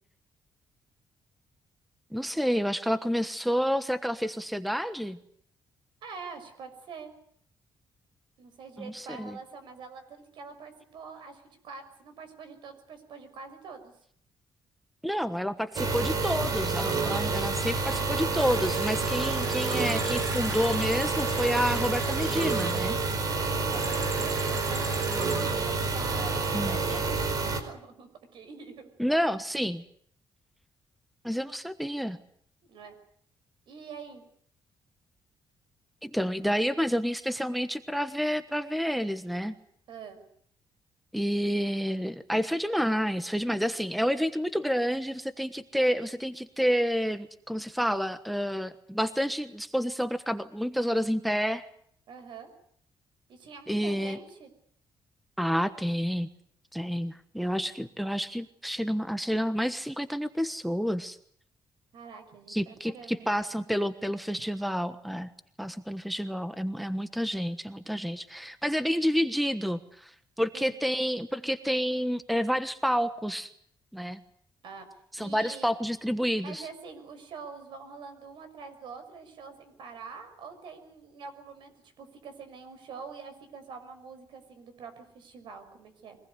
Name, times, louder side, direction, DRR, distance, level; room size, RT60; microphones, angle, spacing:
voice 1, 2.1-5.2 8.8-9.4 15.0-23.0 26.5-26.8 29.0-29.8 31.2-32.2 36.0-39.6 41.1-51.7 53.7-54.2 55.4-56.3 56.7-61.2 62.5-65.3 65.6-73.5 73.9-74.2 75.1-76.7, equal, ahead, 11 dB, 1.2 m, -29 dB
voice 2, 6.0-7.1 8.4-13.9 23.2-28.9 32.7-33.0 33.7-34.2 39.9-40.2 52.1-52.5 53.3-54.5 61.9-63.6 70.5-70.8 74.6-75.7 76.4-86.2, right 5 dB, 75° right, 9 dB, 6.2 m, -45 dB
sound 1, 15.8-27.6, right 4 dB, 50° right, 4.6 m, -28 dB
sound 2, 17.8-18.0 18.3-22.8 23.7-25.5, right 2 dB, 30° right, 6.8 m, -41 dB
24.0 x 19.0 x 9.6 m, 0.64 s
cardioid pair, 125°, 8 cm